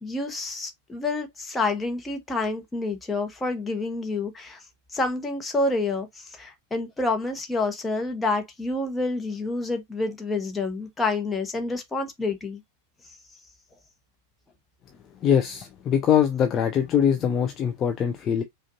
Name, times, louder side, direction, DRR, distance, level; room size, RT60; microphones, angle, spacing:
voice 1, 0.0-4.6 4.9-12.6, left 3 dB, 10° left, 1.1 m, -28 dB
voice 2, 15.2-18.4, left 8 dB, 30° left, 0.6 m, -22 dB
5.0 x 2.5 x 2.7 m
figure-of-eight pair, 90°, 0 cm